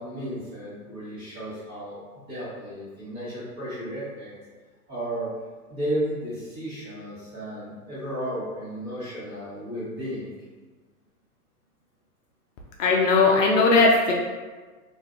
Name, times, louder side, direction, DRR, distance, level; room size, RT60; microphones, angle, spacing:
voice 1, 0.0-4.3 4.9-5.3 5.7-10.3, right 1 dB, 20° right, -10 dB, 1.2 m, -33 dB
voice 2, 12.8-14.1, left 3 dB, 55° left, -1 dB, 0.5 m, -18 dB
2.8 x 2.6 x 2.4 m, 1.4 s
hypercardioid pair, 135°, 46 cm